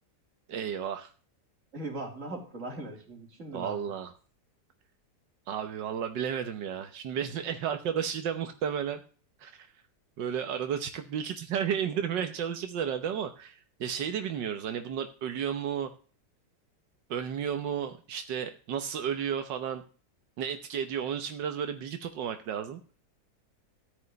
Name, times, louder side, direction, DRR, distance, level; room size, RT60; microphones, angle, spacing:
voice 1, 0.5-1.1 3.5-4.1 5.5-9.0 9.4-9.7 10.2-15.9 17.1-19.8 20.4-23.0, right 8 dB, 90° right, 7 dB, 1.7 m, -33 dB
voice 2, 1.7-3.8, right 2 dB, 45° right, 2 dB, 3.4 m, -39 dB
13.5 x 5.6 x 9.3 m, 0.40 s
omnidirectional pair, 1.9 m